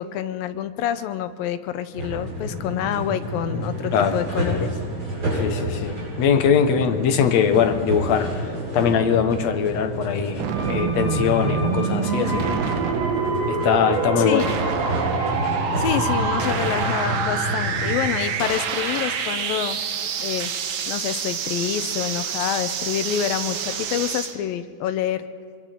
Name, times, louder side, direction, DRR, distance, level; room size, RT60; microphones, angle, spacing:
voice 1, 0.0-4.7 14.2-14.5 15.8-19.8 20.2-20.5 20.9-25.3, left 11 dB, 80° left, 10 dB, 2.5 m, -27 dB
sound 1, 1.9-18.0, equal, 40° right, 8.8 m, -29 dB
voice 2, 5.3-8.3 8.7-12.6 13.5-14.5, left 7 dB, 65° left, 6 dB, 1.9 m, -21 dB
sound 2, 10.4-24.4, right 7 dB, 80° right, 3.1 m, -27 dB
sound 3, 10.5-20.2 20.5-20.6, right 1 dB, 20° right, 5.0 m, -34 dB
24.5 x 24.0 x 4.5 m, 2.2 s
omnidirectional pair, 4.2 m